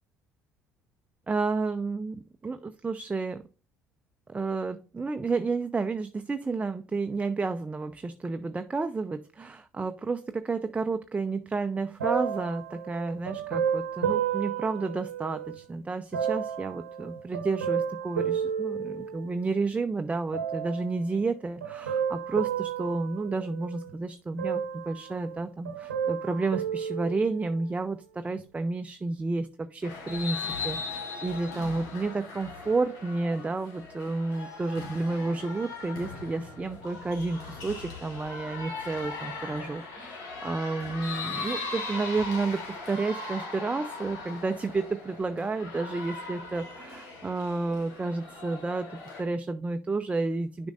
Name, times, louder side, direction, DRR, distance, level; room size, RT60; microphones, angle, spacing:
voice 1, 1.3-3.4 4.3-48.9 49.2-50.7, right 3 dB, 20° right, 9 dB, 0.5 m, -31 dB
sound 1, 12.0-15.6 16.1-19.6 20.3-21.0 21.6-23.9 24.4-25.4 25.6-27.7 28.4-28.5, right 8 dB, 85° right, 0.9 m, -32 dB
sound 2, 29.8-49.2, left 4 dB, 60° left, 2.3 m, -39 dB
10.0 x 5.2 x 2.5 m, 0.34 s
figure-of-eight pair, 55°, 7 cm